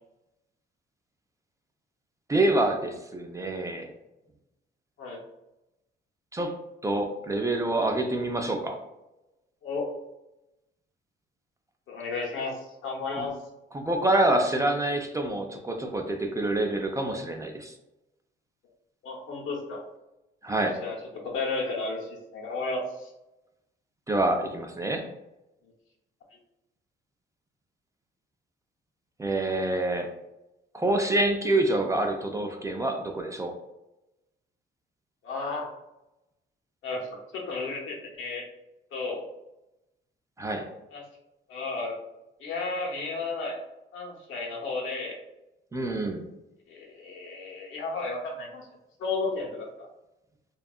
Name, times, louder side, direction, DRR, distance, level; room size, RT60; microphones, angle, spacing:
voice 1, 2.3-3.9 6.3-6.5 6.8-8.8 13.2-13.3 13.7-17.7 20.4-20.8 24.1-25.1 29.2-30.1 30.7-33.5 40.4-40.7 45.7-46.2, right 2 dB, 15° right, 3 dB, 0.3 m, -26 dB
voice 2, 11.9-13.3 19.0-19.8 20.8-21.0 21.3-23.1 35.2-35.7 36.8-38.4 38.9-39.2 40.9-41.0 41.5-41.9 42.4-43.6 43.9-45.2 46.7-48.7 49.0-49.9, left 3 dB, 75° left, -1 dB, 0.8 m, -33 dB
2.6 x 2.3 x 2.3 m, 0.93 s
cardioid pair, 90°, 20 cm